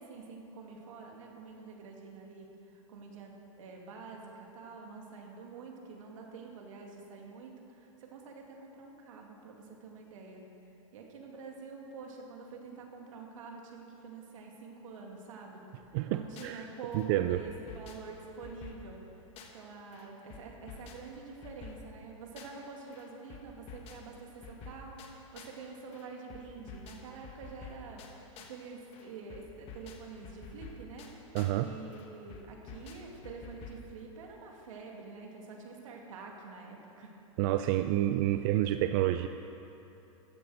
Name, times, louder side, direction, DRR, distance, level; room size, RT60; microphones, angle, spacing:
voice 1, 0.0-10.4 10.9-15.6 16.1-19.0 19.5-37.1 38.3-38.4, right 4 dB, 70° right, 0 dB, 2.4 m, -47 dB
sound 1, 15.8-16.6 16.9-19.7 19.9-22.7 22.9-25.6 25.9-28.6 28.9-31.6 31.9-33.9, left 4 dB, 35° left, 1.4 m, -50 dB
voice 2, 15.9-16.7 16.9-17.4 31.3-31.7 37.4-39.3, right 14 dB, 40° right, 9 dB, 0.4 m, -29 dB
14.5 x 7.6 x 6.4 m, 2.9 s
supercardioid pair, 140°, 17 cm